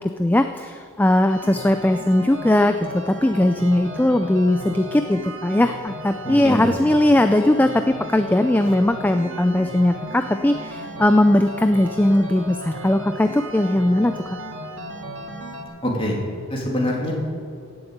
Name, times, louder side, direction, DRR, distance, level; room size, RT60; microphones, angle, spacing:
voice 1, 0.0-14.4, left 1 dB, 10° left, 8 dB, 0.3 m, -19 dB
sound 1, 1.3-15.6, equal, 65° right, 2.1 m, -35 dB
voice 2, 15.8-16.2 16.5-17.1, left 1 dB, 25° left, -2 dB, 2.8 m, -24 dB
17.0 x 7.1 x 8.1 m, 2.4 s
head